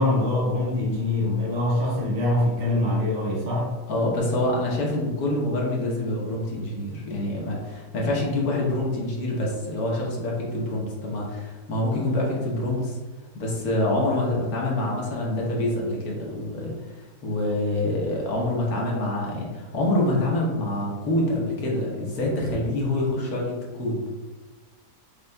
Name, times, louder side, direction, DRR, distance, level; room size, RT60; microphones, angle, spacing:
voice 1, 0.0-3.7, left 1 dB, 30° right, -6 dB, 1.0 m, -24 dB
voice 2, 3.9-13.0 13.3-24.1, left 1 dB, 65° left, -3 dB, 1.3 m, -26 dB
5.3 x 3.0 x 2.2 m, 1.3 s
omnidirectional pair, 1.8 m